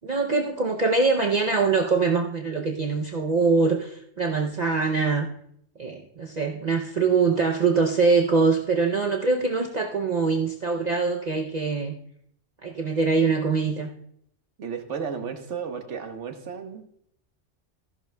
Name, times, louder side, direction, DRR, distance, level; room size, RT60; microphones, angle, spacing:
voice 1, 0.0-5.3 5.8-12.0 12.6-13.9, right 4 dB, 45° right, 2 dB, 0.7 m, -23 dB
voice 2, 14.6-16.8, right 6 dB, 85° right, 6 dB, 1.3 m, -33 dB
14.0 x 11.0 x 2.2 m, 0.68 s
omnidirectional pair, 1.2 m